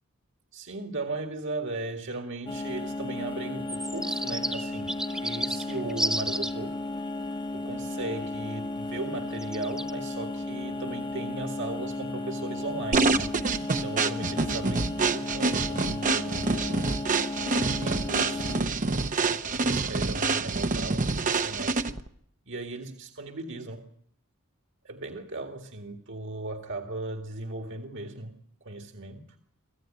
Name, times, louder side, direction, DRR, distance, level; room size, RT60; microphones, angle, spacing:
voice 1, 0.5-4.9 5.2-6.8 7.5-13.4 13.8-16.9 17.7-18.7 19.2-22.0 22.5-23.9 24.8-29.4, right 2 dB, 60° right, 4 dB, 2.0 m, -37 dB
sound 1, 2.5-18.6, left 2 dB, 25° left, 1.1 m, -34 dB
sound 2, 3.7-6.5 9.4-9.9, right 1 dB, 5° right, 1.2 m, -31 dB
sound 3, 12.9-22.1, right 3 dB, 40° right, 0.9 m, -27 dB
25.5 x 15.0 x 9.0 m, 0.69 s
head